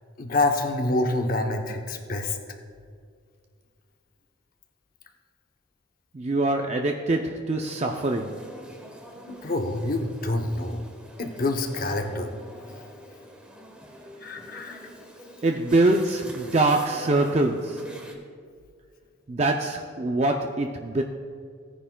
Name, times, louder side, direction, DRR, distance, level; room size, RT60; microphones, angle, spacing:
voice 1, 0.2-2.4 9.3-10.8 11.2-12.3 14.2-14.9, left 2 dB, 45° left, 4 dB, 0.8 m, -27 dB
voice 2, 6.1-8.4 15.4-17.9 19.3-21.0, right 2 dB, 30° right, 2 dB, 0.4 m, -24 dB
sound 1, 7.7-18.1, equal, 5° right, 0.9 m, -46 dB
17.0 x 9.8 x 2.2 m, 2.2 s
head